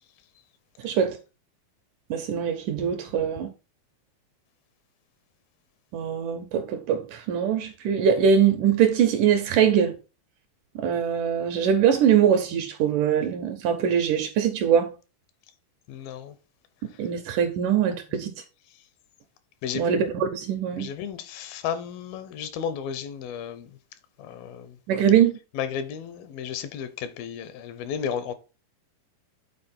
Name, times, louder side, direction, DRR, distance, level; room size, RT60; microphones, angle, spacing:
voice 1, 0.8-1.2 2.1-3.5 5.9-10.0 10.8-14.9 17.0-18.3 19.8-20.9 24.9-25.3, right 8 dB, 75° right, 2.0 m, -22 dB
voice 2, 15.9-16.4 19.6-20.0 20.8-23.8 24.2-24.8 25.5-28.3, left 8 dB, 80° left, 2.5 m, -33 dB
8.9 x 4.1 x 4.2 m
omnidirectional pair, 4.3 m